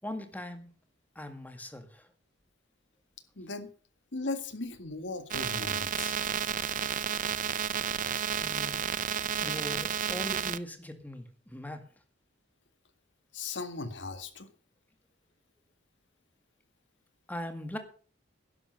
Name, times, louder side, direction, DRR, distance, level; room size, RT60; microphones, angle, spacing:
voice 1, 0.0-0.8 1.2-2.1 8.4-8.8 9.4-11.8 17.3-17.8, left 1 dB, 10° left, 2.0 m, -40 dB
voice 2, 3.4-3.7 4.1-6.1 13.3-14.5, left 3 dB, 80° left, 1.9 m, -37 dB
sound 1, 5.3-10.6, right 8 dB, 45° right, 0.6 m, -31 dB
12.0 x 11.0 x 6.6 m
head